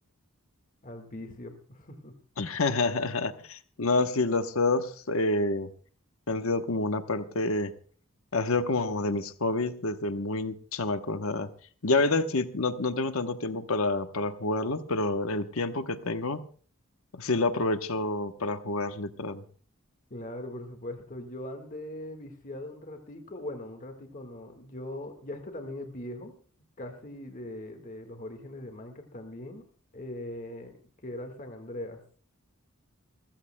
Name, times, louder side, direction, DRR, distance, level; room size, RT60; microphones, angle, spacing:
voice 1, 0.8-2.1 20.1-26.3 26.8-29.6 29.9-30.7 31.0-32.0, left 1 dB, 40° left, 5 dB, 1.7 m, -40 dB
voice 2, 2.4-5.7 6.3-7.7 8.3-11.5 11.8-16.5 17.1-19.4, left 2 dB, 70° left, 9 dB, 1.0 m, -28 dB
29.0 x 15.0 x 2.2 m, 0.43 s
head